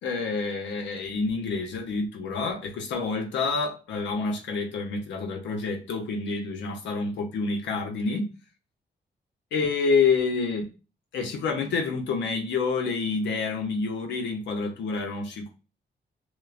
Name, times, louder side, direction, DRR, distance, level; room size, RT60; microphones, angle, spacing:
voice 1, 0.0-8.3 9.5-10.7 11.1-15.5, left 4 dB, 90° left, 0.9 m, -28 dB
6.1 x 2.1 x 2.5 m
cardioid pair, 80°, 18 cm